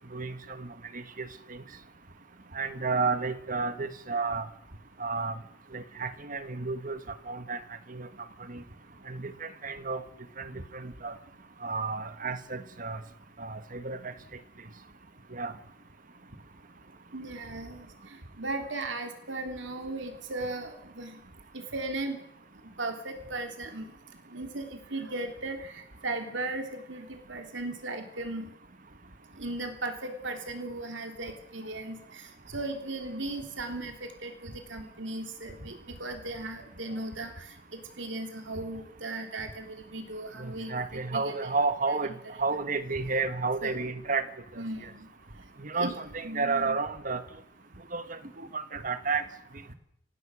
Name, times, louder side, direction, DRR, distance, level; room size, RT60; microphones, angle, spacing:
voice 1, 0.1-1.6 2.5-4.5 5.0-5.4 5.7-7.0 7.3-7.6 7.9-8.1 8.5-8.6 9.1-10.0 10.4-11.2 11.6-13.0 13.4-14.1 15.3-15.5 40.4-44.3 44.5-44.9 45.6-47.2 47.9-49.3, right 4 dB, 45° right, 10 dB, 1.5 m, -32 dB
voice 2, 17.1-17.9 18.4-21.2 21.7-22.2 22.8-23.9 24.3-28.5 29.4-32.2 32.5-37.4 37.7-41.5 41.9-42.0 42.2-42.4 43.6-43.7 44.6-45.1 45.7-45.9 46.2-46.8, right 2 dB, 75° right, 4 dB, 3.1 m, -37 dB
30.0 x 17.0 x 6.3 m, 0.75 s
head